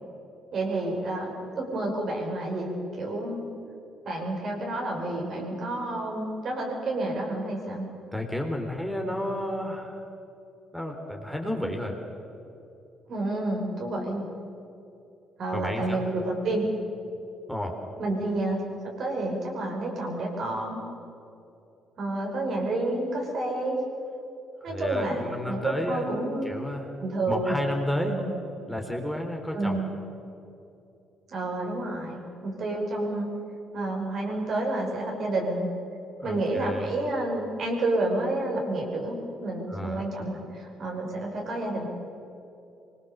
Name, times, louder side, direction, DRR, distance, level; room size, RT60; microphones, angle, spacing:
voice 1, 0.5-3.4 4.0-7.9 13.1-14.2 15.4-16.7 18.0-18.7 19.0-20.8 22.0-23.8 24.6-26.5 27.0-27.5 28.1-28.3 29.5-29.9 31.3-33.3 33.7-35.7 36.2-41.9, right 2 dB, 55° right, 0 dB, 5.8 m, -29 dB
voice 2, 8.1-10.0 10.7-12.0 15.5-16.0 17.5-17.8 24.6-26.1 26.4-26.9 27.3-28.2 28.7-29.8 36.2-36.9 39.7-40.3, left 1 dB, ahead, 2 dB, 3.9 m, -31 dB
25.0 x 20.5 x 7.2 m, 2.8 s
hypercardioid pair, 45°, 0 cm